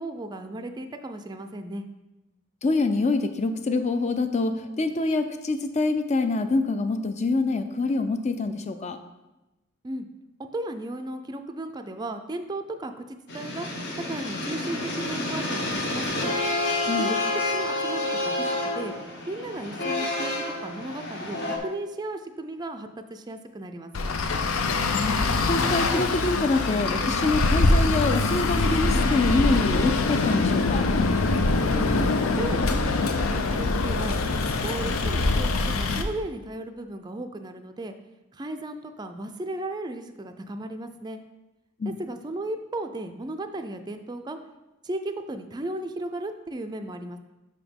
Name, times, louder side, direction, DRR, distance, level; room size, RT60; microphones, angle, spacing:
voice 1, 0.0-1.9 9.8-10.1 10.5-13.7 14.1-16.4 17.0-17.2 17.5-19.0 19.3-24.2 31.7-34.2 34.6-35.5 35.8-38.0 38.3-41.2 41.9-44.4 44.8-47.2, right 1 dB, 20° right, 7 dB, 0.4 m, -35 dB
voice 2, 2.6-9.0 16.8-17.1 24.8-25.1 25.5-30.9 41.8-42.0, left 3 dB, 35° left, 9 dB, 0.5 m, -26 dB
sound 1, 13.3-21.6, left 2 dB, 55° left, 1.1 m, -29 dB
Traffic noise roadway noise, 23.9-36.0, left 3 dB, 80° left, 0.6 m, -23 dB
5.7 x 4.9 x 5.3 m, 1.0 s
head